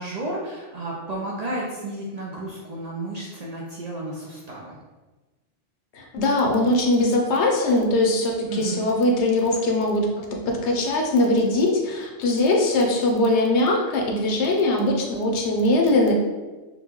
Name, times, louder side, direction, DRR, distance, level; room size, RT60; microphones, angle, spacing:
voice 1, 0.0-4.8 8.5-8.9, right 2 dB, 70° right, -3 dB, 0.4 m, -32 dB
voice 2, 5.9-16.1, left 2 dB, 70° left, 0 dB, 0.9 m, -21 dB
3.7 x 2.2 x 3.0 m, 1.2 s
omnidirectional pair, 1.2 m